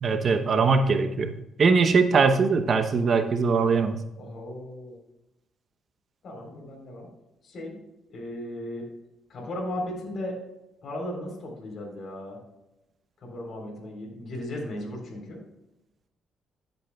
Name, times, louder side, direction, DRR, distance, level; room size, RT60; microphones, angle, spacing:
voice 1, 0.0-1.3 1.6-4.0, right 4 dB, 50° right, 7 dB, 0.8 m, -21 dB
voice 2, 4.2-5.0 6.2-7.1 7.4-7.7 8.1-8.9 9.3-10.4 10.8-12.4 13.2-15.4, left 1 dB, 60° left, -1 dB, 3.8 m, -36 dB
14.5 x 8.0 x 2.3 m, 0.91 s
cardioid pair, 90°, 0 cm